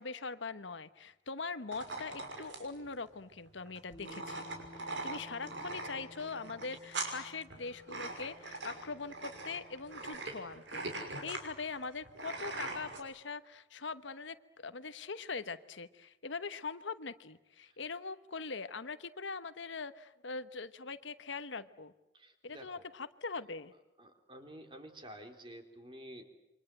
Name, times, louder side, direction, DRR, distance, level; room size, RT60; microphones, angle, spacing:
voice 1, 0.0-4.5 4.8-10.9 11.2-21.9 22.4-23.7, left 4 dB, 80° left, 12 dB, 1.2 m, -42 dB
sound 1, 1.7-13.0, right 2 dB, 75° right, 6.0 m, -42 dB
Bass guitar, 3.9-10.2, left 1 dB, 35° left, 3.0 m, -57 dB
voice 2, 22.1-22.8 24.0-26.2, equal, 25° right, 5 dB, 3.6 m, -51 dB
28.5 x 25.5 x 7.8 m, 0.93 s
head